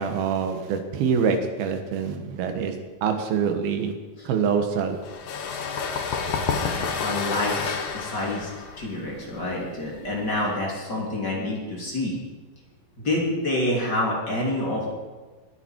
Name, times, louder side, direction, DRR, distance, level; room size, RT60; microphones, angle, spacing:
voice 1, 0.0-2.7 3.0-3.9 4.2-5.0, right 6 dB, 75° right, 6 dB, 3.2 m, -25 dB
sound 1, 5.0-10.5, left 5 dB, 60° left, 2.3 m, -30 dB
voice 2, 6.3-8.5 8.8-12.1 13.0-14.9, left 1 dB, 30° left, -3 dB, 3.4 m, -28 dB
22.0 x 9.1 x 4.7 m, 1.3 s
omnidirectional pair, 4.5 m